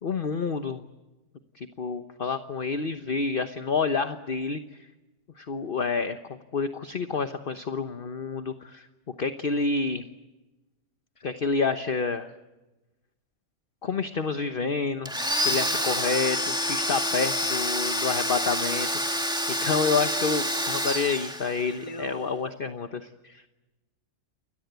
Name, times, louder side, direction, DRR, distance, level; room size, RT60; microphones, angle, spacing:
voice 1, 0.0-0.8 1.5-4.6 5.4-8.9 9.2-10.0 11.2-12.3 13.8-19.2 19.6-23.0, left 4 dB, 40° left, 9 dB, 1.2 m, -28 dB
Domestic sounds home sounds, 15.1-21.8, equal, 5° right, 2.3 m, -28 dB
voice 2, 15.3-15.7 21.8-22.3 23.2-23.5, left 1 dB, 20° left, 8 dB, 1.6 m, -41 dB
29.5 x 22.0 x 8.2 m, 1.1 s
omnidirectional pair, 1.6 m